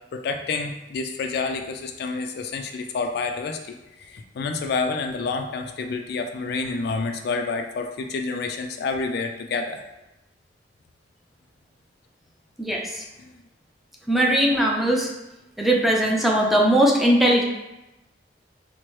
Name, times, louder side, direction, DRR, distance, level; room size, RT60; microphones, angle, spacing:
voice 1, 0.1-9.8, left 4 dB, 60° left, 5 dB, 0.3 m, -28 dB
voice 2, 12.6-13.0 14.1-15.1 15.6-17.4, right 1 dB, ahead, -2 dB, 0.5 m, -19 dB
4.5 x 2.1 x 3.0 m, 0.98 s
head